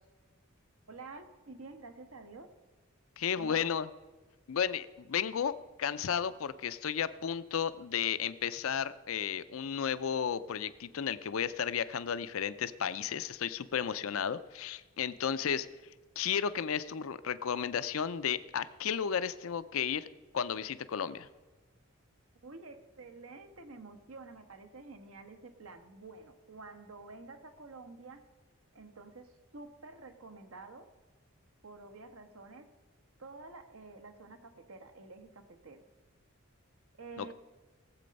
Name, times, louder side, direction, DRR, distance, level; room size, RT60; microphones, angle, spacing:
voice 1, 0.9-2.5 3.4-3.7 22.4-28.2 28.7-30.9 31.6-32.7 33.2-35.8 36.9-37.3, right 3 dB, 80° right, 8 dB, 1.2 m, -49 dB
voice 2, 3.2-3.9 4.5-15.7 16.2-20.1 20.3-21.3 37.2-37.3, left 7 dB, 75° left, 14 dB, 0.5 m, -33 dB
17.5 x 7.7 x 5.3 m, 1.2 s
head